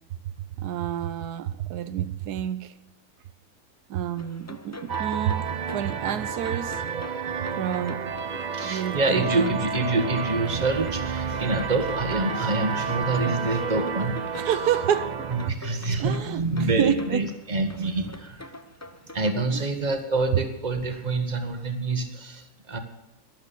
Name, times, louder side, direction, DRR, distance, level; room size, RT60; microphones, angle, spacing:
voice 1, 0.6-2.7 3.9-6.8 7.6-8.0 8.6-9.6 14.4-15.1 16.0-16.5 16.8-17.2 19.5-19.6, right 10 dB, 85° right, 1.2 m, -28 dB
sound 1, 4.2-19.3, left 1 dB, 20° left, 0.5 m, -44 dB
sound 2, 4.9-15.5, right 6 dB, 55° right, 0.5 m, -31 dB
voice 2, 8.5-14.5 15.3-18.5 19.1-22.8, right 2 dB, 30° right, 1.6 m, -26 dB
12.0 x 11.0 x 7.0 m
omnidirectional pair, 1.7 m